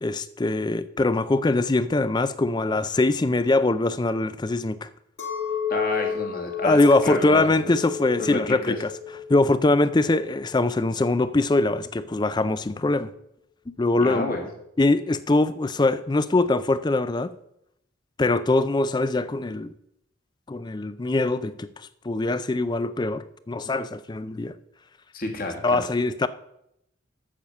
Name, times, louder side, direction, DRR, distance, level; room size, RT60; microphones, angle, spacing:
voice 1, 0.0-4.9 6.6-8.9 9.3-13.1 13.7-14.3 14.8-17.3 18.2-19.7 20.5-24.5 25.6-26.3, left 2 dB, 20° left, 0.4 m, -22 dB
Chink clink, 5.2-10.7, left 7 dB, 85° left, 2.1 m, -32 dB
voice 2, 5.7-7.7 8.2-8.8 14.0-14.5 25.1-25.8, left 2 dB, 45° left, 1.7 m, -30 dB
8.7 x 7.0 x 6.4 m
head